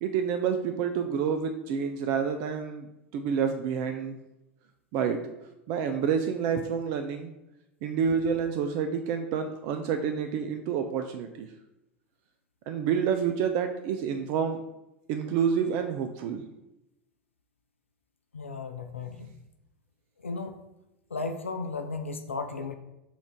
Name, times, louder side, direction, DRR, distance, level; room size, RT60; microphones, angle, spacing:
voice 1, 0.0-4.2 4.9-5.2 5.7-7.3 7.8-11.5 12.7-14.6 15.1-16.4, right 7 dB, 50° right, 6 dB, 0.3 m, -28 dB
voice 2, 18.3-19.3 20.2-20.6 21.1-22.7, left 3 dB, 85° left, 6 dB, 0.4 m, -35 dB
5.9 x 2.5 x 3.5 m, 0.93 s
figure-of-eight pair, 80°, 7 cm